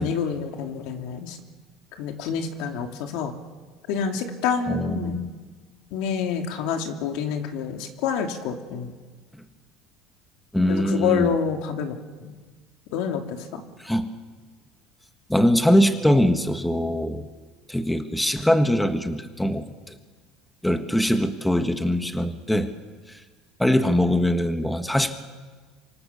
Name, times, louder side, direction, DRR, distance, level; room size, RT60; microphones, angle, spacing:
voice 1, 0.0-1.4 1.9-3.3 3.9-5.3 5.9-8.9 10.6-12.3 12.9-13.6, left 7 dB, 75° left, 4 dB, 2.9 m, -28 dB
voice 2, 4.7-5.3 10.5-11.3 13.8-14.1 15.3-17.3 17.7-19.6 20.6-22.7 23.6-25.2, equal, 5° left, 7 dB, 1.4 m, -22 dB
25.5 x 24.5 x 7.1 m, 1.4 s
cardioid pair, 130°, 0 cm